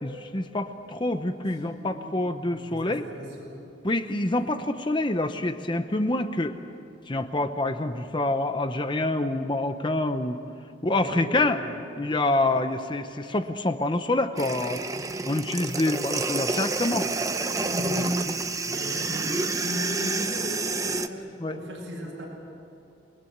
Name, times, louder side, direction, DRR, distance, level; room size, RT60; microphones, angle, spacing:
voice 1, 0.0-3.0 3.8-6.6 7.1-10.4 10.8-11.6 12.0-14.8 15.3-17.1 18.3-18.4 21.4-21.6, left 2 dB, 25° left, 8 dB, 0.8 m, -26 dB
voice 2, 1.6-3.6 10.8-11.7 16.9-18.3 18.6-22.3, left 1 dB, 60° right, -4 dB, 7.7 m, -36 dB
sound 1, 14.4-21.1, right 3 dB, 15° right, 0.8 m, -29 dB
29.5 x 20.0 x 8.1 m, 2.6 s
head